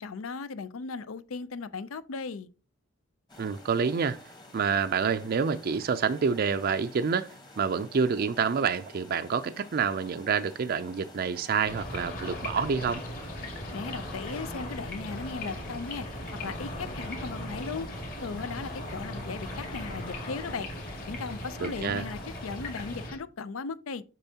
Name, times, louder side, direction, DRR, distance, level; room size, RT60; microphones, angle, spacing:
voice 1, 0.0-2.5 13.7-16.1 16.4-17.9 18.2-20.7 21.1-24.0, left 4 dB, 85° left, 0.5 m, -37 dB
sound 1, 3.3-23.1, left 2 dB, 20° left, 1.1 m, -51 dB
voice 2, 3.4-4.2 4.5-7.3 7.6-13.0 21.6-22.0, right 6 dB, 45° right, 0.4 m, -27 dB
sound 2, 11.6-23.2, left 1 dB, 45° left, 2.1 m, -38 dB
6.8 x 6.2 x 2.8 m
head